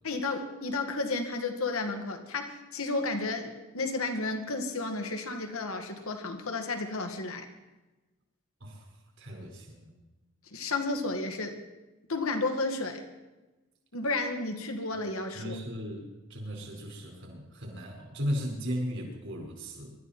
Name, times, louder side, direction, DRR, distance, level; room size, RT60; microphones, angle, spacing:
voice 1, 0.0-7.5 10.5-11.6 12.1-13.1 13.9-15.6, left 3 dB, 75° left, 5 dB, 2.0 m, -32 dB
voice 2, 9.2-9.9 15.3-19.9, equal, 55° right, 1 dB, 4.8 m, -36 dB
24.0 x 13.0 x 4.4 m, 1.1 s
head